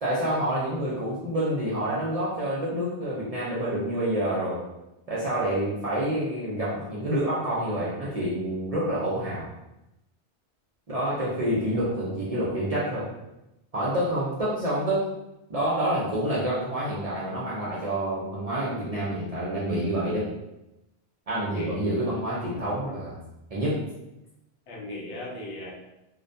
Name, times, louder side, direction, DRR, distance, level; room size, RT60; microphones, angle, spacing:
voice 1, 0.0-4.6 5.1-9.5 10.9-13.0 13.7-15.1 15.5-20.3 21.3-23.2 23.5-23.8, right 1 dB, 50° right, -8 dB, 0.5 m, -28 dB
voice 2, 21.3-22.0 24.7-25.7, left 1 dB, 80° left, -3 dB, 1.0 m, -38 dB
2.4 x 2.1 x 2.5 m, 0.91 s
omnidirectional pair, 1.1 m